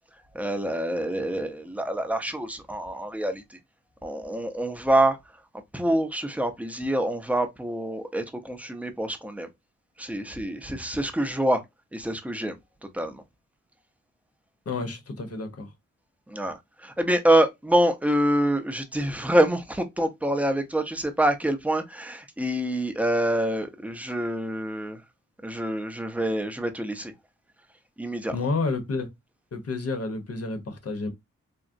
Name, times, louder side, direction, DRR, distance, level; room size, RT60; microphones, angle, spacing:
voice 1, 0.3-3.4 4.0-5.2 5.7-9.5 10.0-11.6 11.9-12.6 12.9-13.2 16.3-25.0 25.4-27.1 28.0-28.3, right 1 dB, 5° right, 0.5 m, -26 dB
voice 2, 14.7-15.7 28.3-29.1 29.5-31.1, left 3 dB, 50° left, 0.8 m, -30 dB
3.5 x 2.0 x 2.5 m
wide cardioid pair, 80°, 31 cm